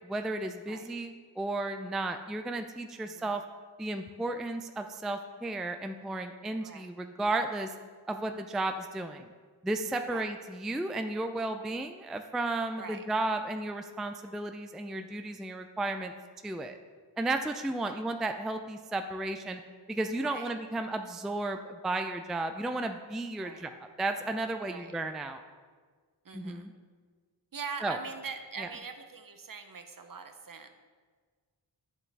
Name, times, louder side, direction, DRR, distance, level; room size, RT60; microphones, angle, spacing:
voice 1, 0.0-3.4 3.8-7.7 8.1-9.3 9.6-16.1 16.4-16.8 17.2-19.6 19.9-25.4 26.3-26.7 27.8-28.0 28.6-28.7, right 2 dB, ahead, 7 dB, 0.4 m, -33 dB
voice 2, 3.0-3.3 6.6-6.9 10.0-10.3 12.8-13.0 17.8-18.0 20.2-20.5 23.4-23.7 24.7-24.9 26.2-26.7 27.5-30.7, right 5 dB, 45° right, 7 dB, 0.8 m, -43 dB
8.8 x 7.1 x 3.4 m, 1.5 s
cardioid pair, 45°, 46 cm